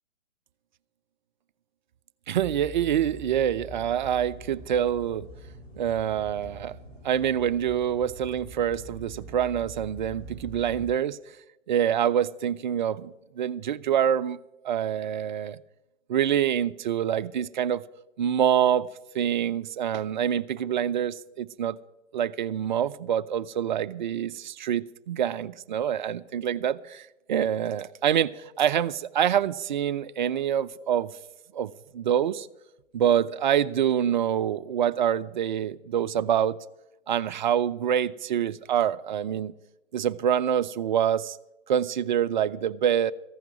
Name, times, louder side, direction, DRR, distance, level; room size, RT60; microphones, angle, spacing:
sound 1, 2.3-10.9, right 2 dB, 55° left, 3.7 m, -44 dB
voice 1, 2.3-5.3 5.8-6.8 7.0-11.2 11.7-14.4 14.6-15.6 16.1-17.8 18.2-18.9 19.1-21.8 22.1-31.1 31.5-32.5 32.9-36.6 37.1-39.5 39.9-41.4 41.7-43.1, right 9 dB, 40° right, 0.5 m, -26 dB
15.0 x 5.9 x 9.2 m
figure-of-eight pair, 130°, 37 cm